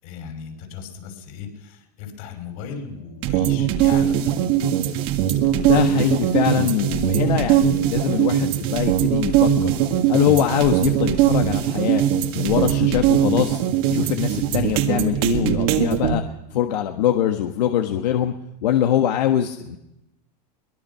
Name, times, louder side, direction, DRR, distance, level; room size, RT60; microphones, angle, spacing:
voice 1, 0.0-4.5, left 6 dB, 60° left, 5 dB, 6.1 m, -36 dB
sound 1, 3.2-16.1, right 10 dB, 45° right, 1.9 m, -20 dB
voice 2, 5.6-9.8 10.1-12.0 12.3-13.6 13.9-16.2 16.5-18.3 18.6-19.8, left 11 dB, 85° left, 5 dB, 1.6 m, -22 dB
23.0 x 21.0 x 5.7 m, 0.87 s
supercardioid pair, 155°, 21 cm